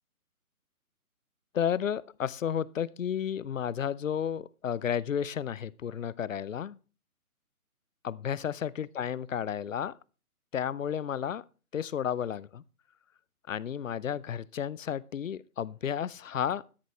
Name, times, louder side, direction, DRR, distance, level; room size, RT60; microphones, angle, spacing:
voice 1, 1.5-6.8 8.0-10.0 10.5-11.4 11.7-12.6 13.5-16.6, left 8 dB, 60° left, 0.6 m, -32 dB
13.0 x 11.0 x 3.2 m
figure-of-eight pair, 145°, 44 cm